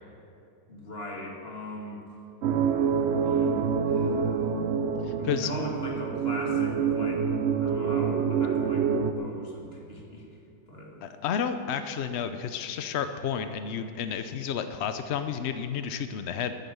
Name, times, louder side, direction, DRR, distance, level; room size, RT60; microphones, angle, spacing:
voice 1, 0.7-2.0 3.2-4.5 5.2-7.3 7.6-10.2 10.7-11.1, left 1 dB, 35° left, -2 dB, 2.3 m, -39 dB
sound 1, 2.4-9.1, right 6 dB, 80° right, 0.6 m, -26 dB
voice 2, 5.0-5.5 11.0-16.5, left 7 dB, 80° left, 9 dB, 0.6 m, -31 dB
10.0 x 9.1 x 9.4 m, 2.5 s
omnidirectional pair, 1.9 m